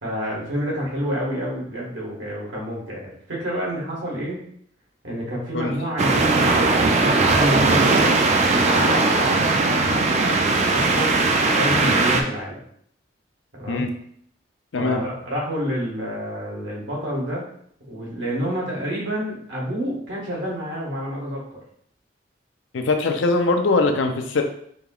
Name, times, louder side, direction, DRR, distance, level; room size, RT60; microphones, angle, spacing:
voice 1, 0.0-4.4 5.0-8.3 8.6-11.1 11.5-12.6 13.6-13.9 14.7-17.4 17.9-21.6, equal, 80° right, -4 dB, 1.6 m, -28 dB
sound 1, 6.0-12.2, right 3 dB, 35° right, 0.4 m, -19 dB
voice 2, 22.7-24.4, left 3 dB, 85° left, 5 dB, 0.5 m, -21 dB
5.2 x 2.9 x 2.3 m, 0.65 s
head